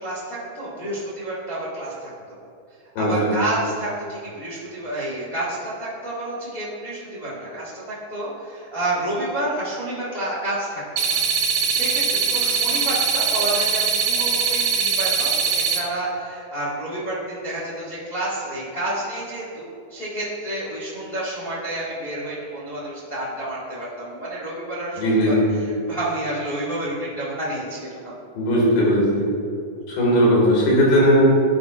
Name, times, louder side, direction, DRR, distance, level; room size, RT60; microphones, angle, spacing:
voice 1, 0.0-2.1 3.0-10.8 11.1-11.2 11.6-25.4 25.9-28.2, right 1 dB, 60° left, -8 dB, 0.6 m, -29 dB
voice 2, 3.0-3.3 25.0-25.5 28.4-29.3 29.9-31.2, equal, 90° left, -5 dB, 3.7 m, -18 dB
sound 1, 11.0-15.8, right 6 dB, 80° right, 1.7 m, -22 dB
12.5 x 5.1 x 2.4 m, 2.5 s
omnidirectional pair, 4.2 m